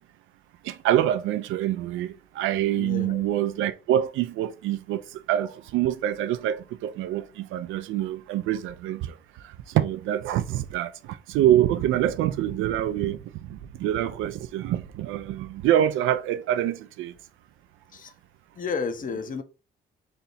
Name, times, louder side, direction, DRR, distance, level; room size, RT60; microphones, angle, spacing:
voice 1, 0.6-5.0 5.3-9.1 9.7-17.1, right 12 dB, 90° right, 0.5 m, -25 dB
voice 2, 2.8-3.3 17.9-18.1 18.6-19.4, left 5 dB, 45° left, 0.6 m, -31 dB
3.3 x 2.8 x 4.1 m
cardioid pair, 90°, 20 cm